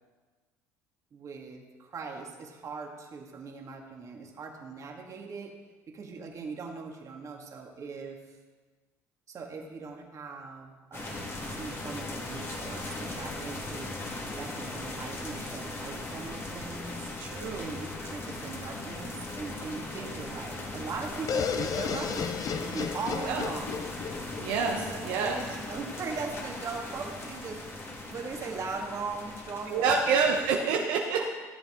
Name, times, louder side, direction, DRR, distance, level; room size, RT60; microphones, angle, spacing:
voice 1, 1.1-5.5 5.9-8.2 9.3-17.1 17.6-22.3 22.6-23.8 24.7-30.1 30.7-31.3, right 4 dB, 45° right, 1 dB, 1.9 m, -40 dB
sound 1, 10.9-30.5, left 2 dB, 30° left, 1.9 m, -39 dB
voice 2, 17.2-17.7 23.2-23.4 24.4-24.8 25.0-25.4 29.7-31.3, right 5 dB, 75° right, 1 dB, 0.9 m, -27 dB
sound 2, 21.3-25.1, left 6 dB, 50° left, 0.8 m, -33 dB
14.0 x 7.3 x 3.7 m, 1.4 s
hypercardioid pair, 70°, 8 cm